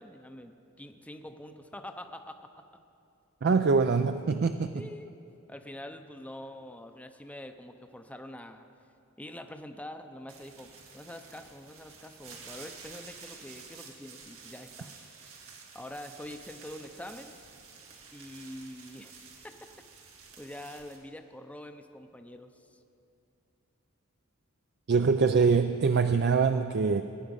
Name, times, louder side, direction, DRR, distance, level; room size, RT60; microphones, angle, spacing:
voice 1, 0.0-2.6 4.7-5.1 5.5-8.6 9.2-15.0 15.7-17.3 18.1-19.1 19.4-19.5 20.4-22.8, left 1 dB, 5° left, 6 dB, 0.6 m, -45 dB
voice 2, 3.4-4.8 24.9-27.0, right 5 dB, 55° right, 8 dB, 0.4 m, -24 dB
sound 1, 10.3-21.0, right 5 dB, 90° right, 2.1 m, -50 dB
19.5 x 9.8 x 5.4 m, 2.6 s
head